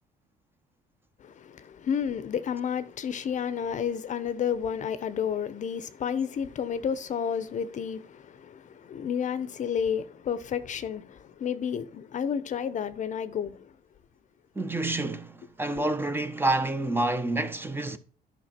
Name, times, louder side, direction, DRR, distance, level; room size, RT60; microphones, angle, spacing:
voice 1, 1.2-13.7, left 7 dB, 45° left, 0.8 m, -31 dB
voice 2, 14.6-18.0, right 2 dB, 15° right, 0.9 m, -28 dB
10.5 x 5.8 x 4.3 m
cardioid pair, 110°, 17 cm